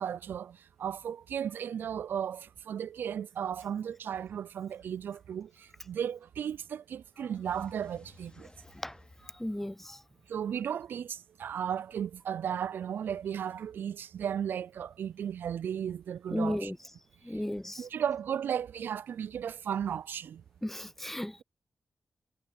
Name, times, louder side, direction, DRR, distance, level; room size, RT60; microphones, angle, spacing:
voice 1, 0.0-8.5 10.3-16.7 17.8-20.4, right 8 dB, 80° right, 0.4 m, -35 dB
sound 1, 7.4-10.5, left 2 dB, 30° left, 5.4 m, -57 dB
voice 2, 9.4-10.0 16.3-16.8 17.3-17.8 20.6-21.4, left 1 dB, 10° left, 0.4 m, -34 dB
cardioid pair, 55°, 3 cm